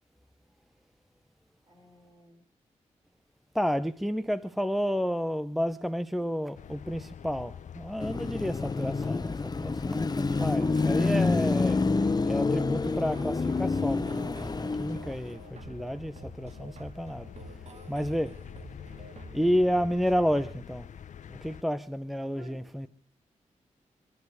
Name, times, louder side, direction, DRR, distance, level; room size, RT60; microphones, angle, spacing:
voice 1, 1.7-2.4 10.2-10.9 22.2-22.6, right 3 dB, 40° right, 6.1 m, -52 dB
voice 2, 3.5-11.9 12.2-17.3 17.9-18.4 19.3-20.9 21.3-22.9, equal, ahead, 0.8 m, -31 dB
sound 1, 6.5-21.6, left 9 dB, 75° left, 0.7 m, -47 dB
Car passing by / Traffic noise roadway noise / Engine, 8.0-15.3, left 3 dB, 30° left, 0.9 m, -28 dB
sound 2, 10.7-20.5, right 2 dB, 60° right, 2.2 m, -48 dB
24.5 x 12.0 x 4.8 m
cardioid pair, 65°, 13 cm